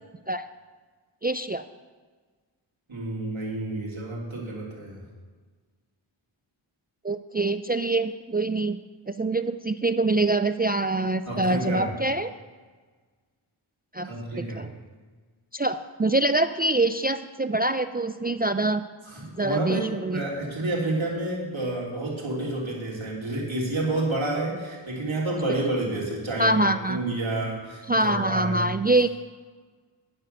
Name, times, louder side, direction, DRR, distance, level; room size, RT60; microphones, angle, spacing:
voice 1, 1.2-1.6 7.0-8.8 9.1-12.3 13.9-14.1 14.5-14.7 15.5-18.8 19.4-20.3 26.4-27.0 27.9-29.1, right 2 dB, 20° right, 10 dB, 0.3 m, -24 dB
voice 2, 2.9-5.0 11.3-11.9 14.0-14.6 19.0-28.6, right 2 dB, 70° right, -4 dB, 3.2 m, -29 dB
9.6 x 7.9 x 6.7 m, 1.4 s
wide cardioid pair, 45°, 49 cm